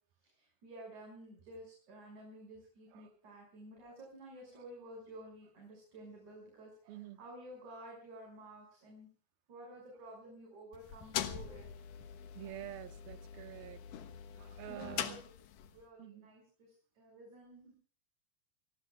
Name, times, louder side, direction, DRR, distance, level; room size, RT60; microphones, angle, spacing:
voice 1, 0.2-9.1 9.5-11.7 14.4-15.2 15.7-17.8, right 1 dB, 50° right, 0 dB, 7.3 m, -52 dB
voice 2, 6.9-7.2 12.3-13.8 14.4-15.2 16.0-16.3, right 13 dB, 80° right, 10 dB, 3.1 m, -48 dB
sound 1, 10.7-15.8, left 10 dB, 70° left, 2.6 m, -43 dB
28.5 x 19.0 x 2.4 m, 0.42 s
omnidirectional pair, 4.2 m